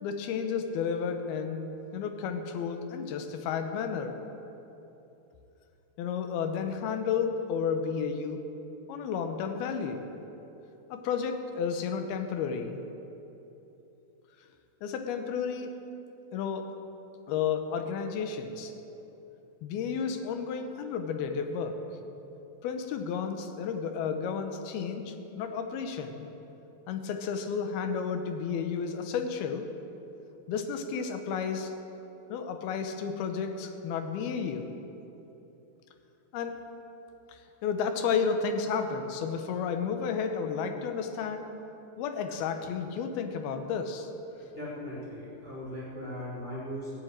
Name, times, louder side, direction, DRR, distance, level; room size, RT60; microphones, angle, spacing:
voice 1, 0.0-4.2 6.0-8.4 8.9-10.1 10.9-12.8 14.8-15.7 16.3-16.7 17.3-18.8 19.6-21.8 22.6-26.3 26.9-29.7 30.5-31.7 32.3-34.7 36.3-36.6 37.3-41.5 42.0-44.1, left 6 dB, 85° left, 6 dB, 2.9 m, -32 dB
voice 2, 44.5-46.9, equal, 15° left, -7 dB, 4.3 m, -38 dB
16.0 x 8.2 x 8.9 m, 3.0 s
omnidirectional pair, 4.3 m